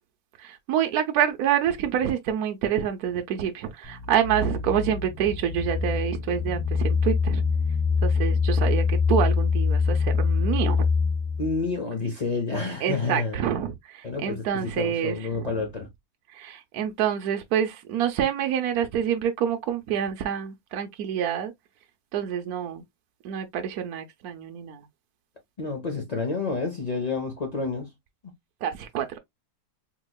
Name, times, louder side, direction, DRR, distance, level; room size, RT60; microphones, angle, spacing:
voice 1, 0.4-7.4 8.0-10.9 12.8-15.7 16.3-21.5 22.1-22.8 23.2-24.9 28.6-29.2, right 9 dB, 65° right, 1.0 m, -27 dB
sound 1, 3.8-11.7, left 5 dB, 25° left, 0.5 m, -24 dB
voice 2, 11.4-13.4 14.0-15.9 25.6-27.9, left 4 dB, 85° left, 0.3 m, -29 dB
4.1 x 2.9 x 2.2 m
omnidirectional pair, 1.9 m